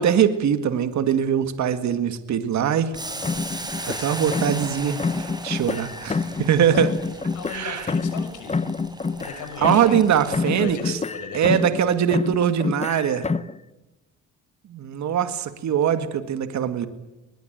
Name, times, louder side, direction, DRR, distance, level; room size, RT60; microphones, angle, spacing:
voice 1, 0.0-2.9 3.9-6.9 7.5-7.9 9.6-11.0 11.3-13.3 14.7-16.9, right 8 dB, 65° right, 10 dB, 2.1 m, -22 dB
Boiling, 2.9-10.7, right 2 dB, 15° right, 6.2 m, -37 dB
sound 1, 3.2-4.7 5.0-6.5 6.7-10.1 10.3-11.8 12.1-13.6, left 4 dB, 20° left, 0.9 m, -27 dB
voice 2, 3.8-4.2 4.6-4.9 6.7-7.1 7.3-8.6 9.2-10.2 10.5-12.1, left 5 dB, 85° left, 8 dB, 6.1 m, -37 dB
21.5 x 21.0 x 9.2 m, 1.0 s
cardioid pair, 90°, 30 cm